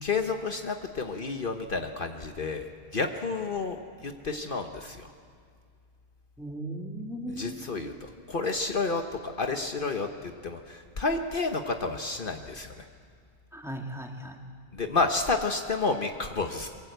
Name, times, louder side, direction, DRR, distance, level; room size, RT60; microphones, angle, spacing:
voice 1, 0.0-2.6 2.9-3.8 4.0-5.1 7.3-12.8 14.7-16.7, left 3 dB, 55° left, 5 dB, 1.3 m, -30 dB
voice 2, 6.4-7.6 13.5-14.4, right 1 dB, ahead, 1 dB, 2.3 m, -37 dB
25.5 x 23.0 x 8.0 m, 2.2 s
omnidirectional pair, 1.1 m